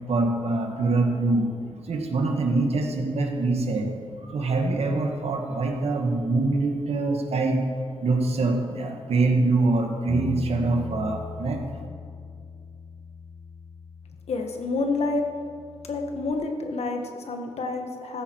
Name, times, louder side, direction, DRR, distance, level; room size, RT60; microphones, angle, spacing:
voice 1, 0.1-1.5 1.9-3.9 4.2-7.6 8.0-11.6, right 3 dB, 75° right, 3 dB, 1.9 m, -24 dB
Bass guitar, 10.1-16.3, left 4 dB, 30° left, 1.0 m, -40 dB
voice 2, 14.3-15.2 15.9-18.2, left 3 dB, 80° left, 4 dB, 1.7 m, -28 dB
15.0 x 12.5 x 4.8 m, 2.2 s
wide cardioid pair, 100°, 11 cm